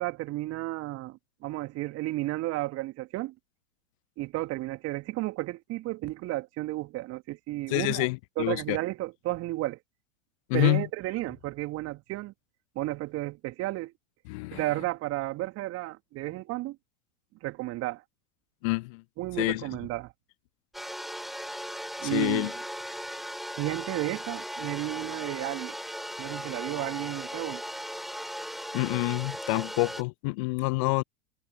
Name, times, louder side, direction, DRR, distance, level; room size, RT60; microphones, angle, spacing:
voice 1, 0.0-3.3 4.2-8.1 8.4-9.8 10.5-12.3 12.7-13.9 14.5-16.8 17.4-18.0 19.2-20.1 22.0-22.5 23.6-25.8 26.2-27.6, right 18 dB, 35° right, 2.7 m, -33 dB
voice 2, 7.7-8.8 10.5-10.9 14.3-14.6 18.6-19.0 19.4-19.6 22.1-22.5 28.7-31.0, left 26 dB, 25° left, 0.3 m, -27 dB
sound 1, 20.7-30.0, equal, ahead, 4.7 m, -38 dB
figure-of-eight pair, 95°, 41 cm